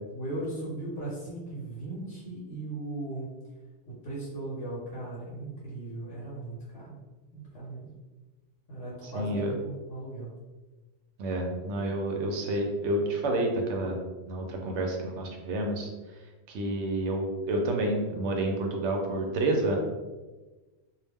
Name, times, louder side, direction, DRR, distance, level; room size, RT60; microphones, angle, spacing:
voice 1, 0.1-3.3 3.9-7.0 7.3-7.9 8.7-10.3, right 2 dB, 65° left, -6 dB, 1.0 m, -37 dB
voice 2, 9.0-9.6 11.2-14.0 14.3-15.9 16.5-19.8, right 1 dB, 80° right, 2 dB, 0.8 m, -29 dB
2.3 x 2.0 x 3.3 m, 1.2 s
omnidirectional pair, 1.2 m